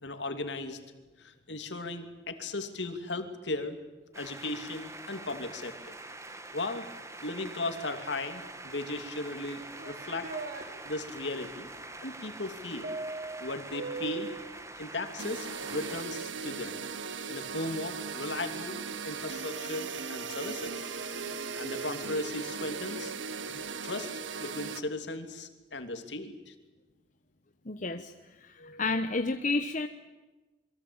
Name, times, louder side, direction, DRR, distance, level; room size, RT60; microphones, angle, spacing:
voice 1, 0.0-0.8 1.2-3.8 4.1-6.0 6.5-6.8 7.2-10.3 10.6-11.7 12.0-12.9 13.4-14.3 14.8-16.8 17.3-18.8 19.0-21.0 21.5-23.1 23.8-24.1 24.4-26.5 28.6-29.0, left 2 dB, 70° left, 7 dB, 2.8 m, -37 dB
sound 1, 4.1-16.0, right 2 dB, 15° right, 1.8 m, -45 dB
sound 2, 9.4-10.7 12.8-14.5, right 3 dB, 50° right, 3.5 m, -39 dB
sound 3, 15.2-24.8, right 5 dB, 85° right, 1.3 m, -38 dB
voice 2, 27.6-28.1 28.4-29.9, left 3 dB, 45° left, 7 dB, 1.1 m, -31 dB
28.0 x 23.0 x 8.9 m, 1.2 s
head